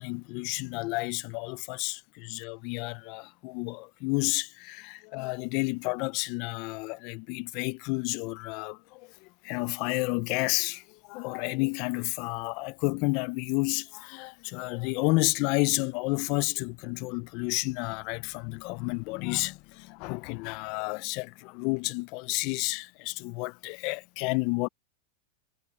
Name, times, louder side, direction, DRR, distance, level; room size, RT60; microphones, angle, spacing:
voice 1, 0.0-24.7, left 27 dB, 50° left, 0.4 m, -31 dB
supercardioid pair, 140°, 0 cm